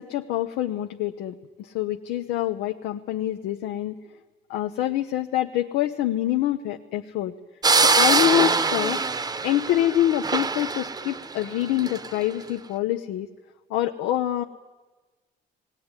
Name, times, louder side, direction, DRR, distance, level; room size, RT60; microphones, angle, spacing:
voice 1, 0.0-3.9 4.5-7.3 7.8-9.0 9.4-13.3 13.7-14.4, left 13 dB, 90° left, 6 dB, 0.8 m, -26 dB
sound 1, 7.6-12.1, right 4 dB, 25° right, 0.9 m, -23 dB
19.0 x 18.0 x 9.7 m, 1.3 s
cardioid pair, 110°, 17 cm